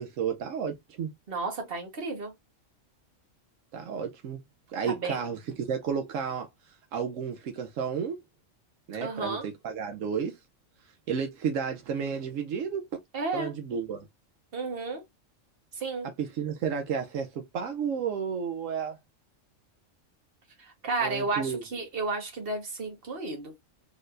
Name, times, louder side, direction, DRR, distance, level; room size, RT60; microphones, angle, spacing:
voice 1, 0.0-1.1 3.7-4.4 4.7-8.2 8.9-10.4 11.1-12.8 13.3-14.1 16.2-19.0 21.0-21.6, right 6 dB, 80° right, 1.0 m, -32 dB
voice 2, 1.3-2.3 4.8-5.2 9.0-9.5 13.1-13.5 14.5-15.0 15.7-16.1 20.6-23.5, right 3 dB, 50° right, 1.5 m, -32 dB
4.2 x 3.3 x 2.4 m
omnidirectional pair, 1.3 m